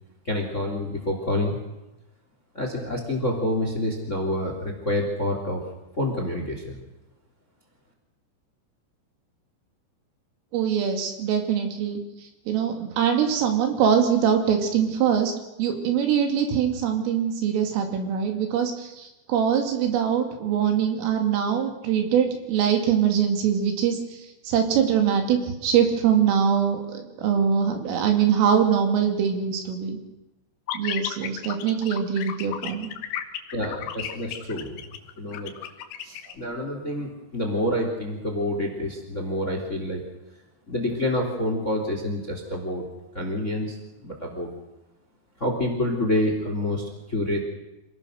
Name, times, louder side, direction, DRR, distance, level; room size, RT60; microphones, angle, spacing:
voice 1, 0.2-1.6 2.5-5.6 6.0-6.8 33.5-34.8 35.2-35.5 36.0-40.0 40.7-42.9 43.1-44.5 45.4-47.4, left 1 dB, 20° left, 3 dB, 2.3 m, -27 dB
voice 2, 10.5-12.0 12.5-15.3 15.6-30.0 30.7-32.9, right 8 dB, 80° right, 4 dB, 5.2 m, -23 dB
sound 1, 30.7-36.3, left 11 dB, 85° left, 4.1 m, -33 dB
26.5 x 18.0 x 6.5 m, 0.98 s
omnidirectional pair, 5.8 m